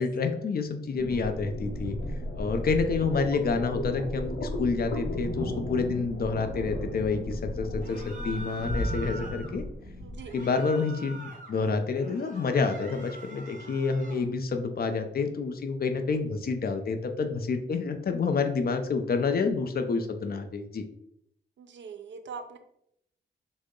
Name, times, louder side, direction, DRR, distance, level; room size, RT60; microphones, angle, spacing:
voice 1, 0.0-2.0 2.4-9.6 10.3-20.8, left 4 dB, 55° left, 6 dB, 0.4 m, -28 dB
sound 1, 0.9-10.3, left 1 dB, 85° left, 0.8 m, -35 dB
sound 2, 7.8-9.5 10.2-11.5 11.9-14.2, right 1 dB, 45° right, 1.1 m, -43 dB
voice 2, 10.0-10.4 21.6-22.6, right 5 dB, 75° right, 8 dB, 0.5 m, -42 dB
3.7 x 2.1 x 3.6 m, 0.75 s
wide cardioid pair, 90°, 19 cm